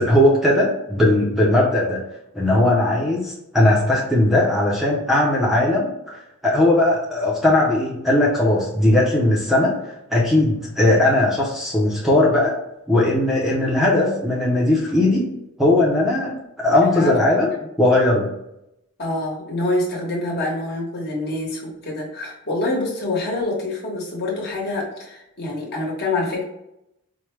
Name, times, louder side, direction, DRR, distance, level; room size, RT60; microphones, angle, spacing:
voice 1, 0.0-2.0 2.3-9.7 10.1-12.5 12.9-15.3 15.6-17.5 17.8-18.3, left 1 dB, ahead, -4 dB, 0.6 m, -18 dB
voice 2, 16.8-17.1 19.0-26.4, left 2 dB, 50° left, -3 dB, 1.2 m, -26 dB
4.7 x 2.2 x 3.1 m, 0.84 s
head